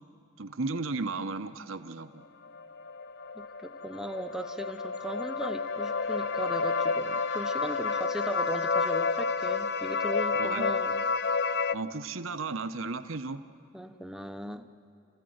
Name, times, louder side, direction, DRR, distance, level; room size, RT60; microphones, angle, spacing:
voice 1, 0.4-2.2 10.3-10.7 11.7-13.4, right 3 dB, 70° right, 10 dB, 0.9 m, -34 dB
sound 1, 2.4-11.7, left 4 dB, 50° left, 0.5 m, -30 dB
voice 2, 3.4-11.0 13.7-14.7, equal, 5° right, 7 dB, 0.7 m, -38 dB
29.5 x 15.5 x 7.9 m, 2.8 s
head